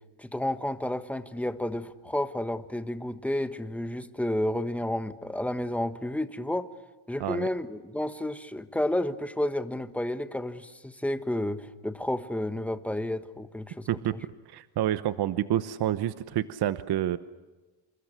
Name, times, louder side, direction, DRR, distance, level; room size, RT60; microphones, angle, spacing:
voice 1, 0.2-6.7 7.1-14.2, left 1 dB, 5° left, 10 dB, 1.4 m, -31 dB
voice 2, 14.5-17.2, right 12 dB, 55° right, 13 dB, 1.0 m, -28 dB
29.0 x 27.5 x 6.5 m, 1.2 s
cardioid pair, 145°, 48 cm